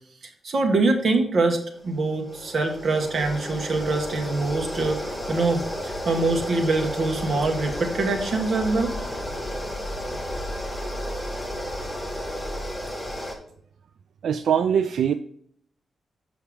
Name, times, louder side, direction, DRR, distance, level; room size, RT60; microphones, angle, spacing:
voice 1, 0.4-1.6 1.8-9.0, right 3 dB, 50° right, 3 dB, 1.4 m, -24 dB
sound 1, 1.7-13.3, equal, 10° left, 1.2 m, -32 dB
voice 2, 14.2-15.1, right 8 dB, 80° right, 10 dB, 0.3 m, -22 dB
7.2 x 5.7 x 3.4 m, 0.65 s
wide cardioid pair, 150°, 0 cm